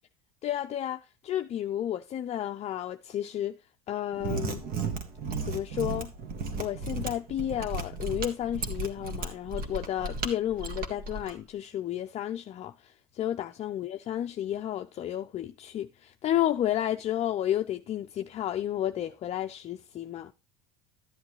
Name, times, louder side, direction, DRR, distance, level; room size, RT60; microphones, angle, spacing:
voice 1, 0.4-3.5 3.9-4.6 5.4-6.1 6.6-20.3, left 11 dB, 35° left, 0.6 m, -32 dB
Mechanisms, 4.1-11.3, right 4 dB, 50° right, 1.9 m, -34 dB
13.0 x 8.0 x 3.1 m
supercardioid pair, 115°, 19 cm